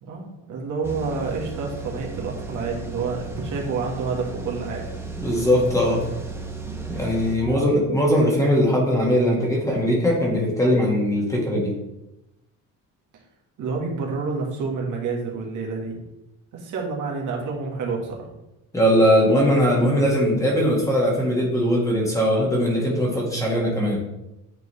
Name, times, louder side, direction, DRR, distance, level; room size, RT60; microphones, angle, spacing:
voice 1, 0.0-4.8 6.8-7.1 7.4-7.6 13.6-16.0 16.5-18.4, right 4 dB, 60° right, -1 dB, 1.7 m, -29 dB
sound 1, 0.8-7.4, right 3 dB, 5° right, 1.0 m, -35 dB
voice 2, 5.2-6.0 6.9-11.7 18.7-24.0, equal, 10° left, -3 dB, 1.8 m, -20 dB
9.1 x 3.8 x 3.3 m, 0.92 s
cardioid pair, 125°, 34 cm